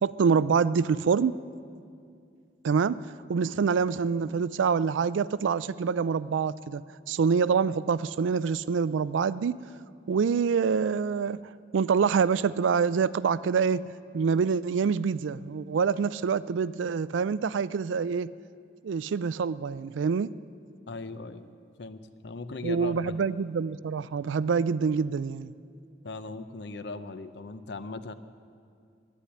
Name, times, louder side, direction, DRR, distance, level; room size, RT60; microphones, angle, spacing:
voice 1, 0.0-1.4 2.6-6.8 7.1-9.6 10.1-11.4 11.7-13.8 14.1-18.3 18.8-20.3 22.6-25.5, right 6 dB, 90° right, 17 dB, 0.4 m, -26 dB
voice 2, 20.9-23.3 26.0-28.1, left 3 dB, 65° left, 11 dB, 0.6 m, -39 dB
11.5 x 9.8 x 9.9 m, 2.3 s
head